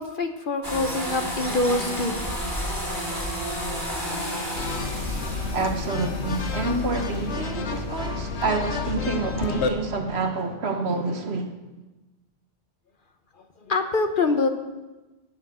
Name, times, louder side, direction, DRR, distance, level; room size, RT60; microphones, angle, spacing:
voice 1, 0.0-2.2 13.6-14.5, left 3 dB, 50° left, 1.0 m, -25 dB
sound 1, 0.6-9.0, equal, 20° left, 3.0 m, -32 dB
sound 2, 4.6-9.7, left 5 dB, 65° left, 1.2 m, -30 dB
voice 2, 5.5-11.5, right 3 dB, 60° right, 1.3 m, -28 dB
11.5 x 6.4 x 8.5 m
omnidirectional pair, 1.2 m